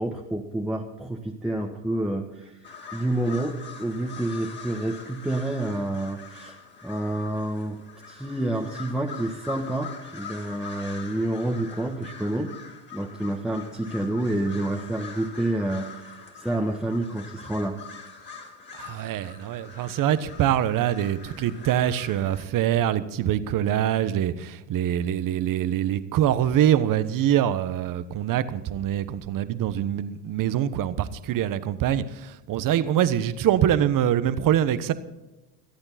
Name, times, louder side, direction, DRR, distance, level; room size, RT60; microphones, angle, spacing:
voice 1, 0.0-2.6 2.9-6.6 6.8-7.8 8.1-12.5 12.9-17.8, right 1 dB, ahead, -1 dB, 1.5 m, -28 dB
sound 1, 2.6-22.5, left 5 dB, 25° left, 3.1 m, -44 dB
voice 2, 18.7-34.9, right 11 dB, 45° right, 13 dB, 1.2 m, -24 dB
26.0 x 8.8 x 4.2 m, 1.1 s
supercardioid pair, 105°, 47 cm